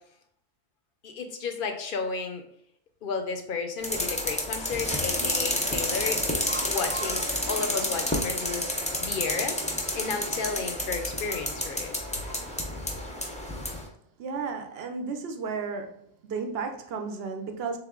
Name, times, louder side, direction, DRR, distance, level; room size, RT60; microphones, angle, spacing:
voice 1, 1.0-2.4 3.0-6.2 6.6-9.6 9.9-11.9, left 4 dB, 65° left, 0.7 m, -33 dB
sound 1, 3.8-13.8, left 1 dB, 10° left, 0.4 m, -30 dB
voice 2, 14.2-17.8, right 5 dB, 75° right, 0.8 m, -33 dB
3.5 x 3.1 x 3.6 m
omnidirectional pair, 1.0 m